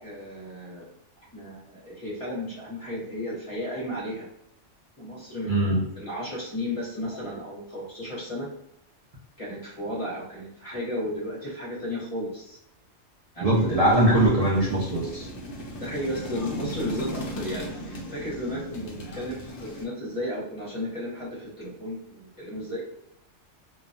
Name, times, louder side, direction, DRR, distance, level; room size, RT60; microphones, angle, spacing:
voice 1, 0.0-0.9 1.3-4.3 5.0-8.5 9.4-12.6 13.3-13.7 15.8-22.8, left 1 dB, 30° left, -6 dB, 0.9 m, -34 dB
voice 2, 5.5-5.8 13.4-15.3, right 1 dB, 50° right, -5 dB, 0.4 m, -21 dB
sound 1, 13.4-19.9, equal, 55° left, 0.7 m, -37 dB
2.4 x 2.1 x 2.5 m, 0.78 s
omnidirectional pair, 1.3 m